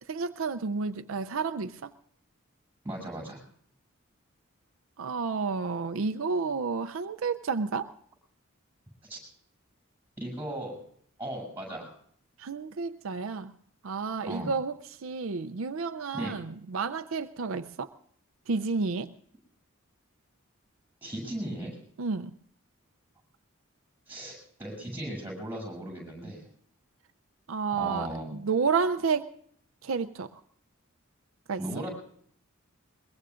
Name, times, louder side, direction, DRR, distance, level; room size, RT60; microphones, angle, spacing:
voice 1, 0.1-1.9 5.0-7.9 12.4-13.5 13.8-17.9 18.5-19.1 22.0-22.3 27.5-29.3 29.8-30.4 31.5-31.6, right 4 dB, 80° right, 8 dB, 0.6 m, -31 dB
voice 2, 2.8-3.4 9.1-9.2 10.2-10.8 11.2-11.9 14.3-14.5 16.1-16.3 21.0-21.8 24.1-26.4 27.8-28.4 31.6-31.9, right 1 dB, 10° right, 0 dB, 7.6 m, -36 dB
22.5 x 22.5 x 2.5 m, 0.62 s
head